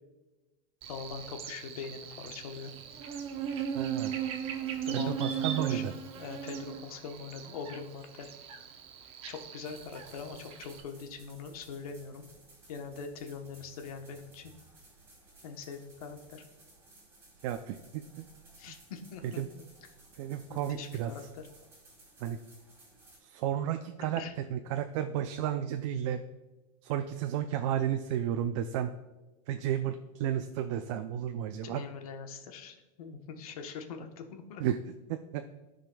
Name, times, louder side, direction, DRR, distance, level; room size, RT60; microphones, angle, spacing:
Buzz, 0.8-10.8, right 8 dB, 30° right, 0.8 m, -38 dB
voice 1, 0.9-2.7 4.9-8.3 9.3-12.2 12.7-14.5 15.4-16.4 18.6-19.7 20.5-21.5 24.2-24.3 31.6-34.6, left 5 dB, 85° left, 5 dB, 1.0 m, -43 dB
voice 2, 3.7-4.1 4.9-5.9 17.4-18.3 18.7-18.8 19.2-19.5 20.1-21.3 22.2-22.4 23.2-26.2 26.8-29.0 29.5-31.8 34.6-34.8 35.1-35.5, right 10 dB, 60° right, 8 dB, 0.4 m, -33 dB
sound 1, 9.6-23.2, right 2 dB, 15° right, 2.0 m, -58 dB
14.0 x 5.1 x 2.3 m, 1.1 s
supercardioid pair, 155°, 18 cm